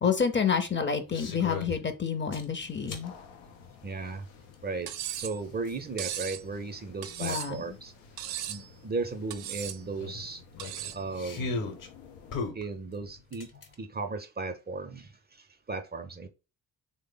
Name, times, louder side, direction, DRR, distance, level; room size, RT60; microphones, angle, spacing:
voice 1, 0.0-3.1 7.2-7.8, left 6 dB, 30° left, 0.6 m, -28 dB
sound 1, 1.1-1.8 2.3-3.1 4.5-4.6 7.3-7.4 7.7-7.8 8.2-8.4 10.0-11.9 12.3-13.7, left 3 dB, 55° left, 1.0 m, -36 dB
sound 2, 2.6-12.5, left 5 dB, 90° left, 0.6 m, -53 dB
voice 2, 3.8-4.3 4.6-7.9 8.5-10.4 10.9-11.7 12.5-13.5 13.8-16.3, right 3 dB, 25° right, 0.5 m, -36 dB
Cutlery silverware, 4.9-5.4 6.0-6.4 7.0-7.6 8.2-8.7 9.3-9.8 10.6-11.0, right 11 dB, 70° right, 0.5 m, -37 dB
3.2 x 2.0 x 3.8 m
supercardioid pair, 50°, 38 cm